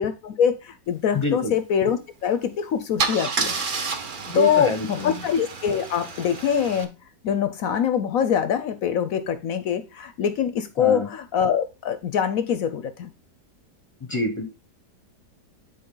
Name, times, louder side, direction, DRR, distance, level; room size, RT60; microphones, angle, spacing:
voice 1, 0.0-3.5 4.3-6.9 7.2-13.1, left 8 dB, 65° left, 11 dB, 0.9 m, -24 dB
voice 2, 1.1-1.6 4.3-5.2 10.8-11.1 14.1-14.4, left 1 dB, 25° left, 5 dB, 0.8 m, -27 dB
Car / Engine starting / Idling, 2.3-2.5 3.0-6.8, right 4 dB, 40° right, 0.7 m, -30 dB
9.5 x 4.0 x 3.8 m, 0.28 s
omnidirectional pair, 1.9 m